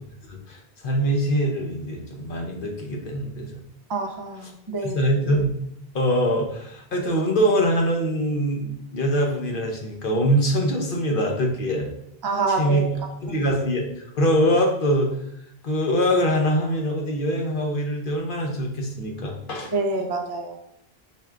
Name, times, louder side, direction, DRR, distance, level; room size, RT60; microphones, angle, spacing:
voice 1, 0.3-3.6 4.8-5.5 5.9-11.9 12.5-12.8 13.2-13.9 14.2-15.1 15.6-19.7, equal, 60° left, 1 dB, 0.9 m, -23 dB
voice 2, 3.9-5.0 12.2-12.9 13.3-13.4 19.7-20.6, right 3 dB, 35° right, 2 dB, 0.4 m, -27 dB
4.4 x 2.4 x 3.3 m, 0.72 s
omnidirectional pair, 1.1 m